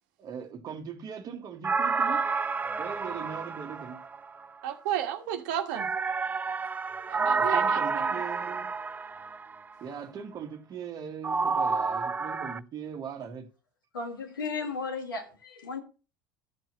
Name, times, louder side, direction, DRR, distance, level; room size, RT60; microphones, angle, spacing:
voice 1, 0.2-2.3 2.8-4.0 7.4-8.7 9.8-13.5, right 7 dB, 35° right, 1.6 m, -40 dB
sound 1, 1.6-4.5 5.8-9.6 11.2-12.6, right 4 dB, 15° right, 0.4 m, -29 dB
voice 2, 4.6-5.9 7.1-8.1, right 10 dB, 60° right, 1.4 m, -33 dB
voice 3, 13.9-15.8, left 4 dB, 75° left, 2.0 m, -35 dB
13.5 x 7.7 x 2.9 m
figure-of-eight pair, 70°, 11 cm